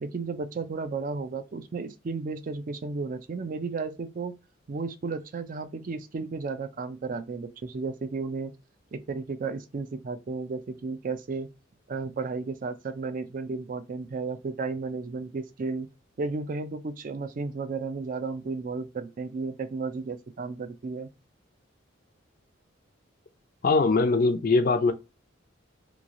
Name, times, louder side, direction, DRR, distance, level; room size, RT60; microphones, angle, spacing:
voice 1, 0.0-4.4 4.7-8.5 8.9-11.5 11.9-15.9 16.2-21.1, right 4 dB, 40° right, 0.3 m, -33 dB
voice 2, 23.6-24.9, left 3 dB, 45° left, 0.4 m, -21 dB
3.1 x 2.3 x 2.5 m
head